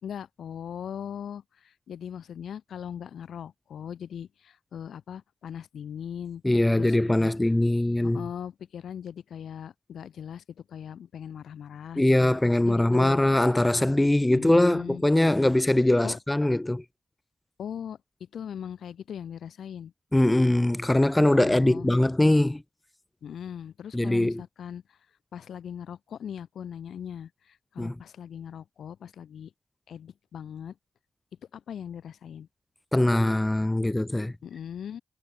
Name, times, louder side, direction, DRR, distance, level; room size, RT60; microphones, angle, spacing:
voice 1, 0.0-6.4 6.7-7.3 8.0-13.2 14.3-15.0 16.0-16.2 17.6-18.0 18.3-19.9 21.4-21.9 23.2-24.8 25.3-29.5 29.9-30.7 31.5-32.5 34.4-35.0, left 8 dB, 85° left, 1.8 m, -39 dB
voice 2, 6.4-8.2 12.0-16.8 20.1-22.6 23.9-24.4 27.8-27.9 32.9-34.3, left 1 dB, 20° left, 0.4 m, -22 dB
cardioid pair, 45°, 0 cm